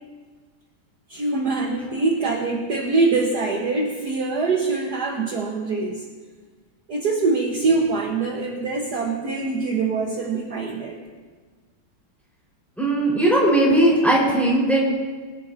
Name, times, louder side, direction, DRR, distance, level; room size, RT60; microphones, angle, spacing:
voice 1, 1.1-6.0 6.9-11.0, right 3 dB, 55° right, -1 dB, 1.6 m, -24 dB
voice 2, 12.8-14.8, right 1 dB, ahead, -5 dB, 4.3 m, -18 dB
23.0 x 12.0 x 2.7 m, 1.5 s
omnidirectional pair, 2.3 m